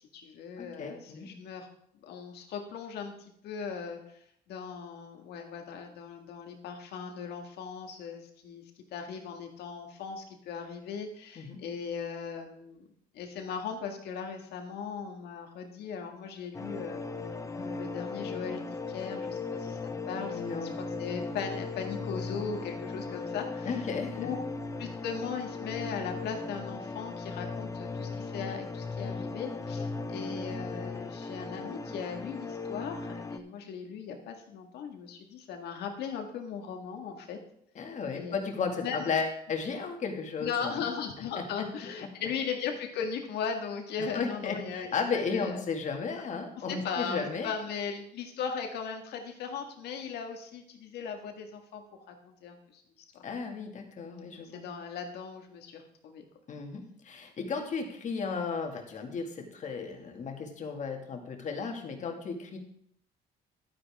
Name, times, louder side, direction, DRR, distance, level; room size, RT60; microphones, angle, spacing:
voice 1, 0.0-1.7 2.0-4.0 4.5-8.6 8.9-12.9 13.1-17.1 17.5-20.7 21.0-23.8 24.2-24.4 24.8-37.4 38.1-38.4 38.8-39.0 40.4-45.6 46.6-52.8 53.1-53.3 54.3-56.2, left 6 dB, 75° left, 4 dB, 1.9 m, -38 dB
voice 2, 0.6-1.3 11.4-11.6 20.3-20.8 23.6-24.3 37.8-40.8 41.4-41.7 44.1-47.5 53.2-54.7 56.5-62.6, left 5 dB, 45° left, 3 dB, 2.1 m, -34 dB
sound 1, 16.5-33.4, left 3 dB, 20° left, 0.7 m, -37 dB
11.5 x 9.8 x 3.6 m, 0.70 s
cardioid pair, 110°, 17 cm